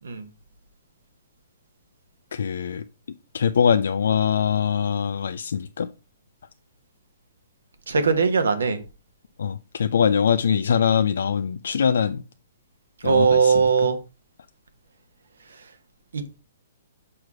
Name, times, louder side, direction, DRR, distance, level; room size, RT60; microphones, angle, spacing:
voice 1, 2.3-2.8 3.3-5.9 9.4-12.2 13.0-13.6, left 7 dB, 70° left, 0.4 m, -22 dB
voice 2, 7.9-8.8 13.0-14.0 16.1-16.2, right 5 dB, 80° right, 1.3 m, -19 dB
6.3 x 4.8 x 4.8 m
hypercardioid pair, 130°, 0 cm